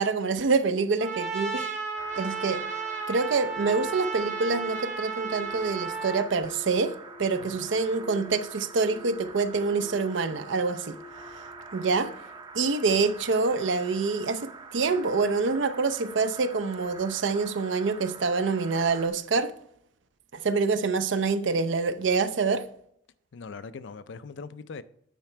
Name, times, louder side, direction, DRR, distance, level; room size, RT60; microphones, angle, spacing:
voice 1, 0.0-1.7 2.2-2.6 3.1-11.0 11.7-12.1 12.5-19.5 20.3-22.7, right 4 dB, 70° right, 0.6 m, -26 dB
Trumpet, 1.0-6.3, right 5 dB, 40° right, 1.0 m, -33 dB
sound 1, 2.0-13.0, left 3 dB, 25° left, 0.6 m, -48 dB
sound 2, 2.0-19.1, right 4 dB, 25° right, 0.6 m, -46 dB
voice 2, 7.4-7.7 23.3-24.8, left 4 dB, 70° left, 0.5 m, -41 dB
9.2 x 4.9 x 4.4 m
head